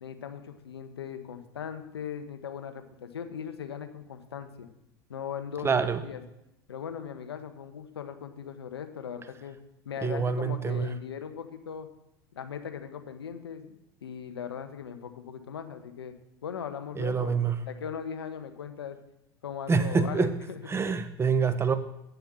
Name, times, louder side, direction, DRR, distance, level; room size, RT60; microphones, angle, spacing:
voice 1, 0.0-4.7 5.1-6.2 6.7-9.6 9.8-11.9 12.3-16.1 16.4-17.4 17.7-19.0 19.4-20.6, left 8 dB, 85° left, 8 dB, 1.2 m, -39 dB
voice 2, 5.6-6.0 10.0-10.9 17.0-17.6 19.7-20.3 20.7-21.7, right 5 dB, 20° right, 10 dB, 1.1 m, -26 dB
8.6 x 7.2 x 7.4 m, 0.83 s
hypercardioid pair, 85°, 13 cm